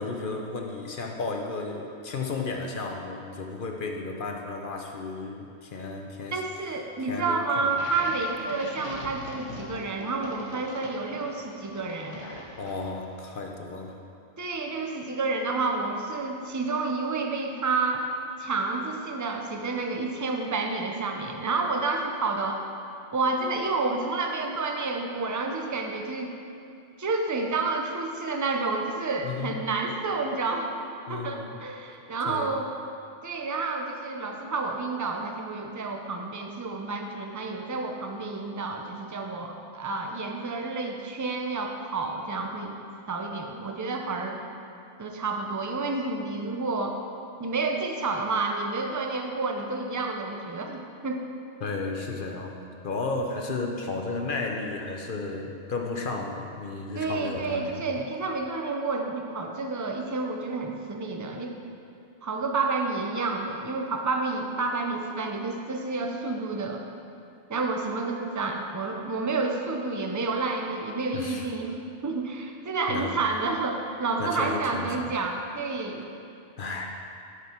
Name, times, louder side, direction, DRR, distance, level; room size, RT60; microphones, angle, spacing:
voice 1, 0.0-6.4 7.1-7.7 12.6-14.0 29.2-29.6 31.1-31.6 32.3-32.5 51.6-52.6 52.8-57.8 71.1-71.5 72.9-73.1 74.2-75.1 76.6-77.1, left 3 dB, 50° left, 2 dB, 0.8 m, -33 dB
voice 2, 6.3-12.3 14.4-18.1 18.4-22.6 23.1-26.4 27.0-30.7 31.1-32.7 33.2-42.8 43.1-44.4 45.0-47.0 47.4-51.3 57.0-61.6 62.2-66.8 67.5-71.8 72.0-76.1, right 3 dB, 25° right, 2 dB, 0.4 m, -30 dB
sound 1, 7.7-13.2, left 1 dB, 25° left, 1.3 m, -42 dB
11.5 x 6.1 x 4.4 m, 2.6 s
omnidirectional pair, 1.3 m